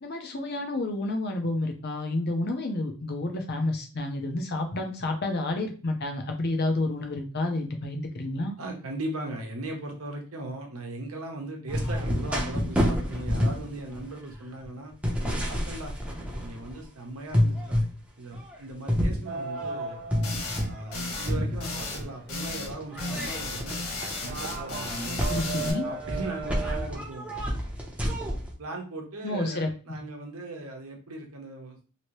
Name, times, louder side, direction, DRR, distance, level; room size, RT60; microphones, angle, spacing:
voice 1, 0.0-8.5 25.3-25.9 29.2-30.0, left 2 dB, 45° left, 4 dB, 0.6 m, -30 dB
voice 2, 8.6-14.9 15.2-15.9 16.4-17.8 18.2-20.0 20.7-23.8 24.2-25.5 25.8-27.3 28.6-31.8, right 2 dB, 70° right, 1 dB, 0.8 m, -38 dB
sound 1, 11.7-16.9 17.3-17.9 18.3-21.0 21.3-22.1 22.7-28.5, equal, 5° right, 0.7 m, -29 dB
sound 2, 19.3-26.9, right 4 dB, 45° right, 0.5 m, -38 dB
sound 3, 20.2-20.6 20.9-21.3 21.6-22.0 22.3-22.7 23.0-25.7, left 2 dB, 85° left, 0.9 m, -34 dB
2.9 x 2.7 x 3.1 m, 0.37 s
head